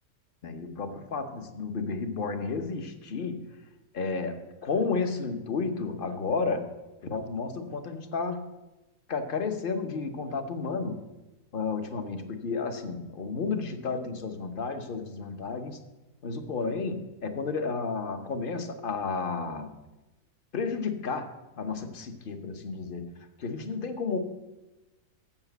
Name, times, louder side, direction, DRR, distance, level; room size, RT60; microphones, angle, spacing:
voice 1, 0.4-3.5 3.9-6.7 7.0-8.4 9.1-11.0 11.5-15.8 16.2-19.7 20.5-21.3 21.6-23.1 23.4-24.2, left 4 dB, 45° left, 7 dB, 0.9 m, -32 dB
7.3 x 6.8 x 7.9 m, 1.1 s
omnidirectional pair, 1.5 m